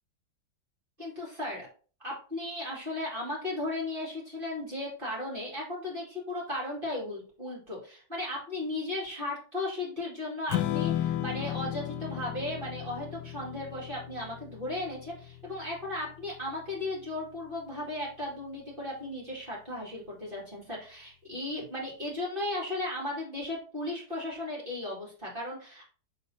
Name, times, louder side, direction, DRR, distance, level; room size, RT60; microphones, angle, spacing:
voice 1, 1.0-1.7 2.0-25.8, left 1 dB, 30° right, -5 dB, 2.5 m, -36 dB
Strum, 10.5-16.8, left 12 dB, 85° left, 1.2 m, -35 dB
6.1 x 4.1 x 4.2 m, 0.39 s
omnidirectional pair, 1.8 m